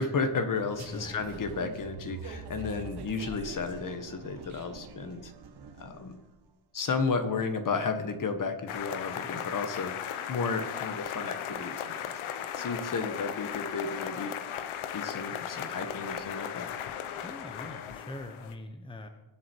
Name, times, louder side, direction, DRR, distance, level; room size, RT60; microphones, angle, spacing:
voice 1, 0.0-5.3 5.8-6.2 6.7-12.1 12.5-16.7, left 4 dB, 40° left, 8 dB, 1.6 m, -33 dB
sound 1, 0.7-6.3, right 5 dB, 50° right, 1.6 m, -45 dB
voice 2, 0.9-1.3 17.2-19.1, left 1 dB, 10° left, 6 dB, 1.1 m, -42 dB
sound 2, 8.7-18.6, left 9 dB, 75° left, 1.1 m, -37 dB
24.0 x 8.0 x 4.7 m, 1.0 s
cardioid pair, 125°, 48 cm